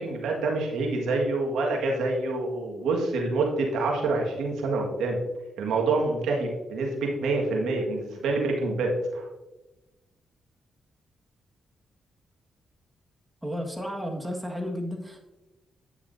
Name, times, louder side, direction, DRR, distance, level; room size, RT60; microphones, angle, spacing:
voice 1, 0.0-5.2 5.6-9.2, right 3 dB, 85° right, 0 dB, 1.7 m, -27 dB
voice 2, 13.4-15.2, equal, 10° right, 2 dB, 1.7 m, -32 dB
9.3 x 7.3 x 2.7 m, 1.0 s
supercardioid pair, 55°, 0 cm